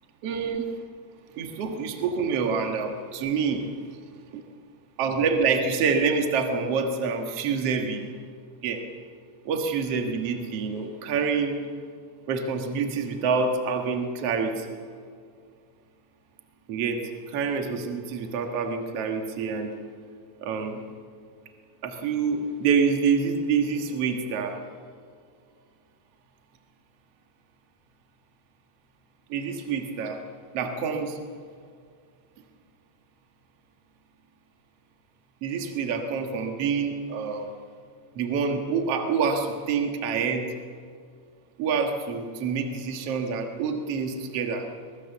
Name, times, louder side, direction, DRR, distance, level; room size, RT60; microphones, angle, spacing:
voice 1, 0.2-0.6 1.4-3.7 4.3-4.4 5.0-8.1 8.6-8.8 9.4-11.6 12.3-14.7 16.7-19.7 20.4-20.8 21.8-24.6 29.3-30.2 30.5-31.2 35.4-37.5 38.1-40.5 41.6-44.7, right 5 dB, 75° right, 4 dB, 1.4 m, -27 dB
22.5 x 21.0 x 7.2 m, 2.2 s
omnidirectional pair, 5.3 m